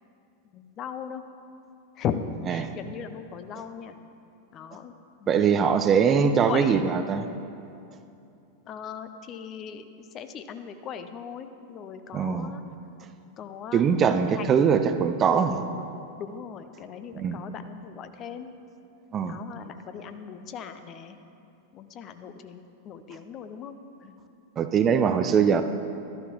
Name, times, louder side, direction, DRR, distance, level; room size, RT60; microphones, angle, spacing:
voice 1, 0.5-1.2 2.0-2.2 2.5-3.9 4.5-4.9 5.2-7.0 8.7-12.6 13.4-14.1 14.4-14.7 15.3-18.5 19.3-21.2 21.7-24.2 25.1-25.4, left 8 dB, 30° left, 9 dB, 0.6 m, -38 dB
voice 2, 5.3-7.3 12.1-12.5 13.7-15.6 17.2-17.4 19.1-19.4 24.6-25.6, right 6 dB, 25° right, 9 dB, 0.5 m, -22 dB
12.5 x 11.5 x 3.0 m, 2.7 s
figure-of-eight pair, 90°, 0 cm